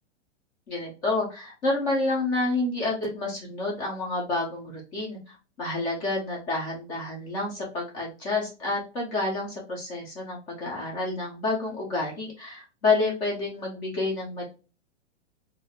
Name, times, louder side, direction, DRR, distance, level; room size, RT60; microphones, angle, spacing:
voice 1, 0.7-14.4, left 3 dB, 15° left, -2 dB, 0.3 m, -29 dB
2.4 x 2.1 x 2.7 m, 0.32 s
hypercardioid pair, 140°, 36 cm